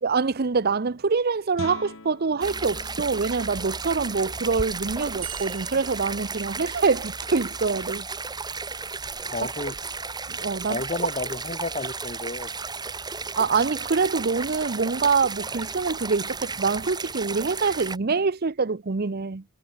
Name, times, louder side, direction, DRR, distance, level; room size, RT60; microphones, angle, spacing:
voice 1, 0.0-8.1 10.3-10.8 13.4-19.4, right 4 dB, 50° right, 0.7 m, -25 dB
Guitar, 1.5-7.1, left 2 dB, 70° left, 2.7 m, -45 dB
sound 1, 2.4-18.0, right 4 dB, 20° right, 3.4 m, -34 dB
sound 2, 5.2-7.2 10.6-11.7, right 15 dB, 70° right, 7.0 m, -44 dB
voice 2, 9.3-9.8 10.7-12.5, left 2 dB, 35° left, 2.8 m, -32 dB
head